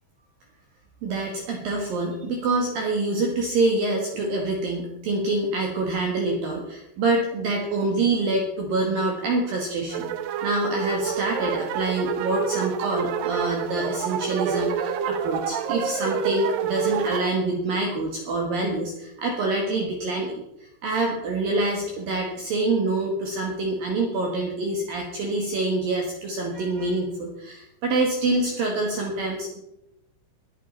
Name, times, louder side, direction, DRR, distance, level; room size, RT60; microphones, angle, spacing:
voice 1, 1.0-10.1 10.4-20.4 20.8-29.6, right 2 dB, 60° right, 0 dB, 3.0 m, -26 dB
sound 1, 9.9-17.3, right 8 dB, 90° right, 2.0 m, -28 dB
22.5 x 8.3 x 4.2 m, 0.82 s
omnidirectional pair, 5.2 m